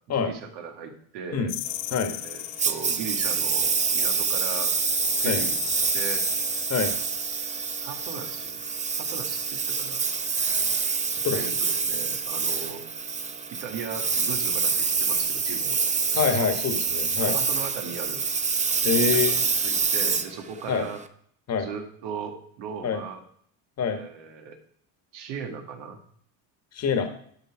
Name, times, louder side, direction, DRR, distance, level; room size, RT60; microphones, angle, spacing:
voice 1, 0.2-1.5 2.2-4.7 5.2-6.3 7.8-8.6 9.0-10.0 11.3-12.8 13.5-15.8 16.4-16.5 17.2-18.2 18.8-21.0 21.6-23.2 23.9-24.6 25.1-26.0, right 6 dB, 75° right, 4 dB, 2.0 m, -38 dB
sound 1, 1.5-3.0 4.3-6.9, left 16 dB, 75° left, 0.7 m, -35 dB
Engine, 2.6-21.0, right 5 dB, 15° right, 0.6 m, -26 dB
voice 2, 16.1-17.4 18.8-19.4 20.7-20.9 21.5-21.7 22.8-23.0 23.8-24.0 26.7-27.1, left 6 dB, 35° left, 7 dB, 1.5 m, -25 dB
12.0 x 5.3 x 4.8 m, 0.62 s
supercardioid pair, 115°, 44 cm